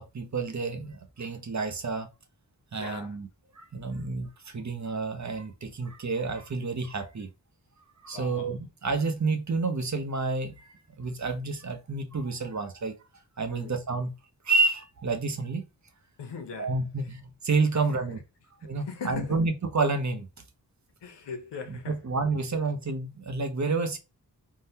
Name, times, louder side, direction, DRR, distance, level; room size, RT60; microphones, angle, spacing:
voice 1, 0.0-2.1 2.7-3.3 3.5-7.3 8.0-12.9 13.4-14.1 14.4-15.6 16.6-18.2 18.6-20.3 21.7-24.0, right 3 dB, 45° right, 0.7 m, -29 dB
voice 2, 2.8-3.2 8.1-8.5 13.5-13.7 16.2-16.7 17.7-17.8 18.6-19.4 21.0-22.0, left 5 dB, 90° left, 0.8 m, -39 dB
3.7 x 2.1 x 2.7 m
wide cardioid pair, 60°, 40 cm